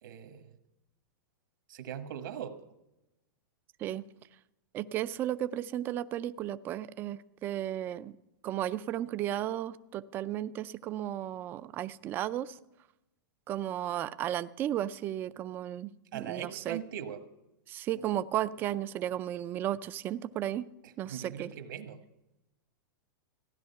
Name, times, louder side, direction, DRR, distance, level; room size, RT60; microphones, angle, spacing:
voice 1, 0.0-0.6 1.7-2.6 16.1-17.2 20.8-22.0, right 9 dB, 70° right, 8 dB, 1.4 m, -40 dB
voice 2, 4.7-8.1 8.4-12.6 13.5-16.8 17.7-20.7 21.0-21.5, right 12 dB, 20° right, 14 dB, 0.4 m, -34 dB
15.5 x 10.5 x 5.6 m, 0.93 s
supercardioid pair, 165°, 11 cm